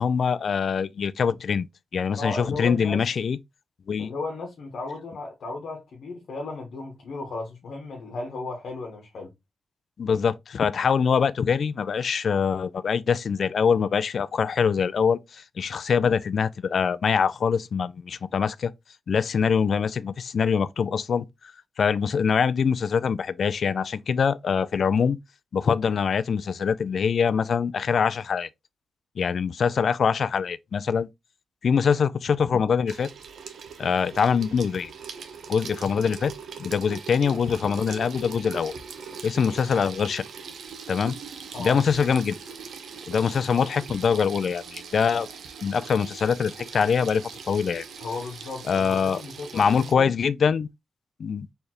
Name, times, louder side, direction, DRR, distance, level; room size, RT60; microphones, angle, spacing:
voice 1, 0.0-1.7 1.9-3.4 3.9-4.1 10.0-18.7 19.1-21.3 21.8-25.2 25.5-28.5 29.2-31.1 31.6-33.1 33.8-34.9 35.5-36.3 36.6-38.8 39.2-40.2 40.9-41.2 41.6-42.4 43.1-45.3 45.6-47.8 48.7-49.2 49.5-50.7 51.2-51.5, left 6 dB, 65° left, 0.3 m, -24 dB
voice 2, 2.2-3.1 4.0-9.3 41.5-41.8 48.0-50.2, left 3 dB, 80° left, 1.1 m, -35 dB
Water tap faucet / Sink (filling or washing), 32.9-49.9, right 6 dB, 85° right, 0.8 m, -41 dB
4.3 x 3.3 x 2.9 m
cardioid pair, 100°, 0 cm